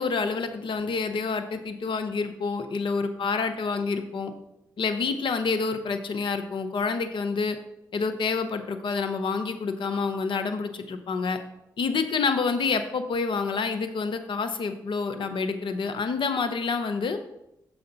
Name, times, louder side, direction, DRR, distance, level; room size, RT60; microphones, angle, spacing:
voice 1, 0.0-4.3 4.8-7.6 7.9-11.4 11.8-17.2, left 4 dB, 70° left, 9 dB, 0.7 m, -28 dB
6.5 x 5.7 x 4.0 m, 0.83 s
supercardioid pair, 40°, 9 cm